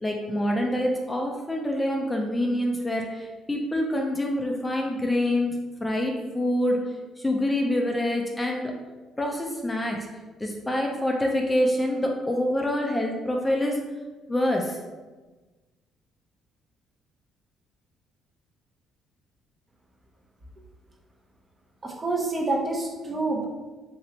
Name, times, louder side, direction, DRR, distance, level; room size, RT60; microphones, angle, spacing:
voice 1, 0.0-5.5 5.8-6.8 7.2-8.7 9.2-10.1 10.4-13.8 14.3-14.8, left 1 dB, 15° left, 1 dB, 0.5 m, -26 dB
voice 2, 21.8-23.5, right 2 dB, 30° right, -1 dB, 0.7 m, -27 dB
2.9 x 2.9 x 2.8 m, 1.2 s
supercardioid pair, 75°, 0 cm